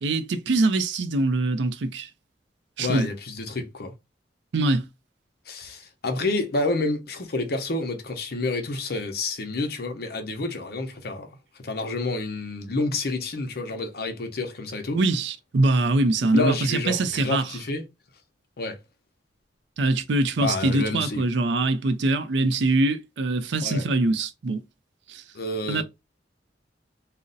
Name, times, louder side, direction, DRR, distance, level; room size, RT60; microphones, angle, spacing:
voice 1, 0.0-2.1 2.8-3.1 4.5-4.9 14.9-17.5 19.8-24.6 25.1-25.2 25.7-25.8, right 2 dB, 75° right, 0.4 m, -23 dB
voice 2, 2.8-3.9 5.5-15.0 16.3-17.9 18.6-18.8 20.4-21.2 23.6-23.9 25.3-25.8, left 2 dB, 60° left, 0.7 m, -29 dB
2.5 x 2.1 x 3.8 m
head